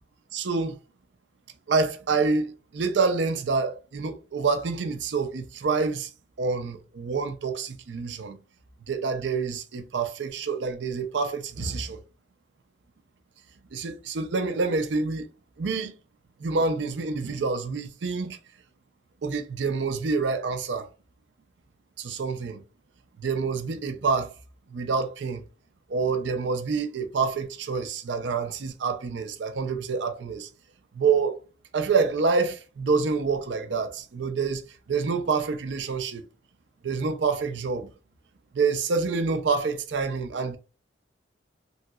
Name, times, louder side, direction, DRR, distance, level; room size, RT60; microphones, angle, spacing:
voice 1, 0.3-0.7 1.7-6.1 6.4-8.4 8.9-12.0 13.7-15.3 15.6-15.9 16.4-18.4 19.2-20.9 22.0-22.6 23.2-24.3 24.7-25.4 25.9-30.5 30.9-31.4 31.7-34.6 34.9-36.3 36.8-37.9 38.5-40.6, right 4 dB, 80° right, 0.5 m, -27 dB
3.1 x 2.8 x 2.3 m
head